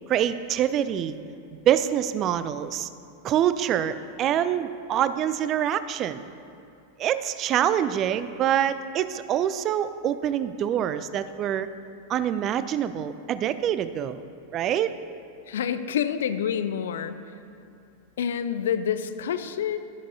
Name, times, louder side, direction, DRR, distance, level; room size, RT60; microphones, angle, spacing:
voice 1, 0.1-1.2 1.7-2.9 3.2-6.3 7.0-11.7 12.1-14.2 14.5-14.9, right 10 dB, 35° right, 13 dB, 0.3 m, -25 dB
voice 2, 15.5-17.2 18.2-19.8, left 8 dB, 60° left, 11 dB, 0.4 m, -27 dB
11.5 x 11.0 x 2.7 m, 2.7 s
figure-of-eight pair, 90°, 0 cm